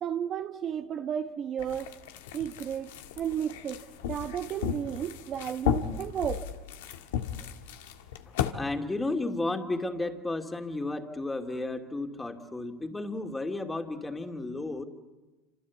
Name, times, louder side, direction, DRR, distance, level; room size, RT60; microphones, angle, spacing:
voice 1, 0.0-1.9 2.3-6.4, right 9 dB, 45° right, 1.1 m, -33 dB
sound 1, 1.6-8.5, left 9 dB, 85° left, 1.7 m, -35 dB
voice 2, 8.3-14.8, left 2 dB, 10° left, 2.7 m, -33 dB
27.0 x 26.0 x 8.4 m
supercardioid pair, 100°, 0 cm